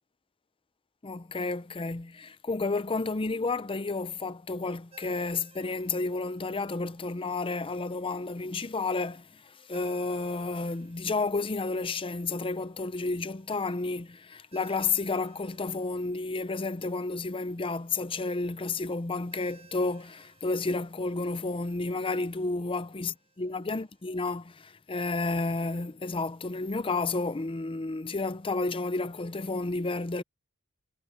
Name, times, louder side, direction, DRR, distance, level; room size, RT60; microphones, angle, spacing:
voice 1, 1.0-30.2, left 3 dB, 25° left, 0.6 m, -31 dB
Ringtone, 4.9-24.1, right 5 dB, 30° right, 3.9 m, -61 dB
head